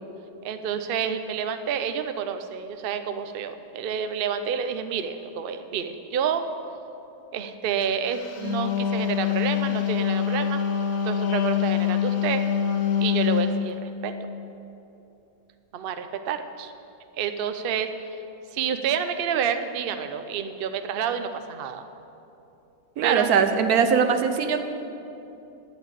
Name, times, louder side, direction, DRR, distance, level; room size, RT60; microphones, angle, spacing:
voice 1, 0.4-6.5 7.3-10.6 11.0-12.4 13.0-14.1 15.7-16.7 17.2-17.9 18.5-21.9 23.0-23.3, right 7 dB, 55° right, 9 dB, 0.7 m, -29 dB
Wind instrument woodwind instrument, 8.2-13.6, left 9 dB, 65° left, 1.2 m, -25 dB
voice 2, 23.0-24.6, right 6 dB, 80° right, 8 dB, 1.3 m, -21 dB
10.5 x 9.3 x 8.2 m, 2.8 s
omnidirectional pair, 1.6 m